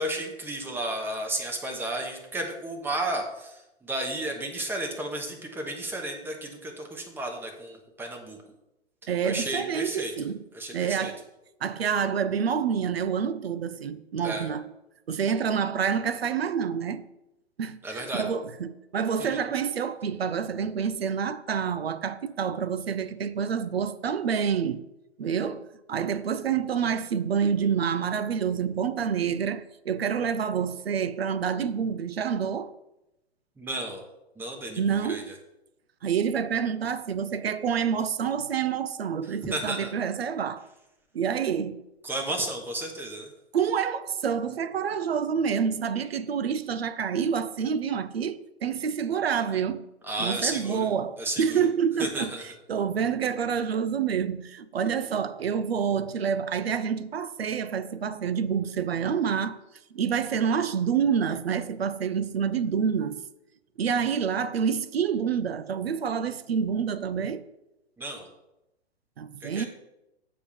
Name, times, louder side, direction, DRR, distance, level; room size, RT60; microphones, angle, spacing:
voice 1, 0.0-8.4 9.2-10.1 10.5-11.1 14.2-14.5 17.8-18.2 19.2-19.4 33.6-34.0 34.4-35.3 39.2-39.9 42.0-43.3 50.0-50.9 51.2-51.6 52.0-52.4 68.0-68.3 69.4-69.7, right 1 dB, 5° right, 1.0 m, -33 dB
voice 2, 9.1-10.4 10.7-11.2 11.6-14.7 15.1-17.1 17.6-24.8 25.2-32.7 34.8-35.3 36.0-40.7 41.1-41.8 43.5-49.9 50.2-52.3 52.7-59.6 59.9-63.2 63.8-67.5 69.2-69.7, right 7 dB, 65° right, 0.6 m, -28 dB
7.2 x 4.6 x 6.9 m
figure-of-eight pair, 115°, 33 cm